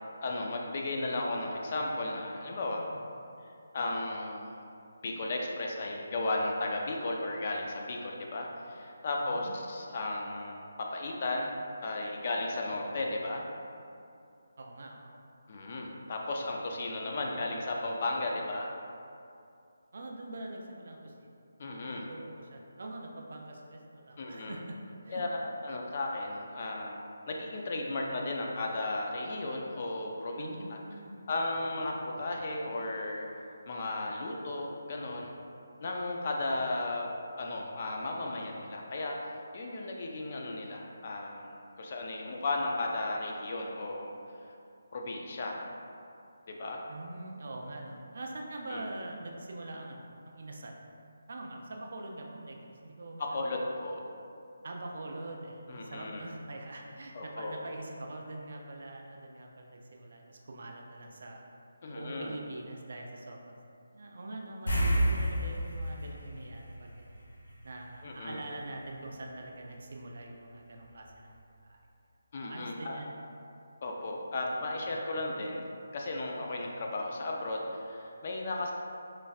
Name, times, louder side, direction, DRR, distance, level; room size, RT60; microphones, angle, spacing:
voice 1, 0.2-2.8 3.7-4.5 5.0-11.5 11.8-13.5 15.5-18.7 21.6-22.1 24.2-24.6 25.1-27.0 27.3-30.8 31.3-35.4 35.8-37.1 37.4-44.2 44.9-45.7 46.5-46.8 48.7-48.8 53.2-54.0 55.7-56.3 57.1-57.6 61.8-62.4 64.9-65.2 68.0-68.4 72.3-73.0 73.8-75.7 75.9-78.7, left 2 dB, 30° left, 0 dB, 0.3 m, -35 dB
voice 2, 9.2-9.6 14.6-15.1 19.9-21.3 21.9-24.8 25.0-25.2 25.7-25.8 30.4-31.3 31.9-32.0 46.9-50.8 51.3-53.5 54.6-61.5 61.9-63.6 63.9-67.0 67.6-71.3 71.6-71.8 72.5-73.1 74.4-74.5 76.4-76.7, right 2 dB, 50° right, 1 dB, 0.4 m, -44 dB
sound 1, 64.7-67.5 67.8-67.9 70.8-70.9 71.3-71.4, right 1 dB, 85° left, 1.0 m, -30 dB
4.0 x 3.1 x 2.3 m, 2.5 s
hypercardioid pair, 175°, 0 cm